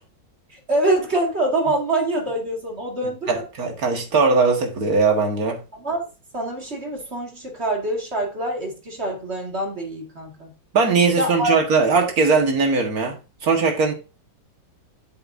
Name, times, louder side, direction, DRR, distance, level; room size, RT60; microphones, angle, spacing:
voice 1, 0.5-3.4 5.7-6.1 6.3-10.5 11.2-11.5, right 1 dB, 35° right, 2.4 m, -25 dB
voice 2, 3.3-5.6 10.7-13.2 13.4-13.9, right 4 dB, 50° right, 2.1 m, -19 dB
8.0 x 7.9 x 2.7 m
omnidirectional pair, 2.1 m